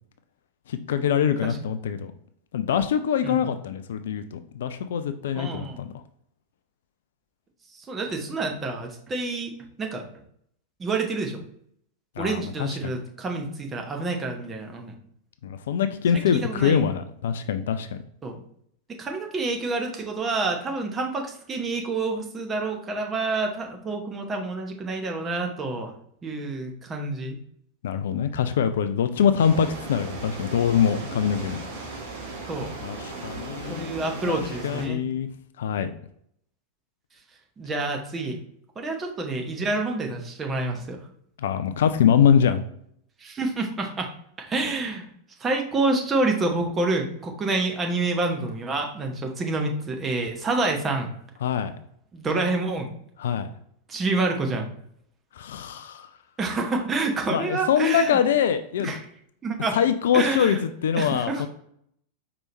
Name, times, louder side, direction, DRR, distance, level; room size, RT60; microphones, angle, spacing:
voice 1, 0.7-2.1 2.5-5.9 12.2-12.9 15.4-18.0 27.8-31.6 32.8-33.9 34.3-35.3 35.6-35.9 41.4-42.6 51.4-51.7 53.2-53.5 55.3-56.1 57.3-59.0 59.7-61.5, left 8 dB, 60° left, 10 dB, 0.3 m, -24 dB
voice 2, 5.3-5.8 7.7-10.1 10.8-11.4 12.2-15.0 16.3-16.8 18.2-18.4 18.9-25.9 26.2-27.4 32.5-32.7 33.7-35.0 37.6-38.4 38.8-41.0 43.2-44.1 44.4-45.1 45.4-51.1 52.1-52.9 53.9-54.7 56.4-58.2 58.8-59.0 59.4-59.8 60.1-60.6 61.0-61.5, right 3 dB, 20° right, 3 dB, 0.9 m, -28 dB
sound 1, 29.4-34.9, right 3 dB, 50° right, 0.9 m, -37 dB
4.7 x 3.0 x 3.0 m, 0.69 s
figure-of-eight pair, 90°, 0 cm